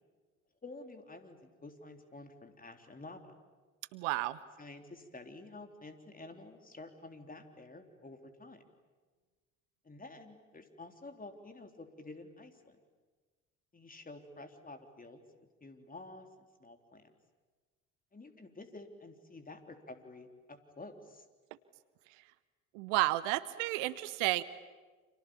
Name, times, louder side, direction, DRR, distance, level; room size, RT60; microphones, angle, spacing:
voice 1, 0.6-3.3 4.6-8.6 9.8-12.8 13.7-15.2 15.6-16.3 16.6-17.1 18.1-21.3, left 2 dB, 20° left, 6 dB, 3.7 m, -50 dB
voice 2, 3.9-4.4 22.7-24.4, right 18 dB, 65° right, 16 dB, 1.0 m, -31 dB
29.5 x 27.5 x 7.2 m, 1.4 s
figure-of-eight pair, 55°, 39 cm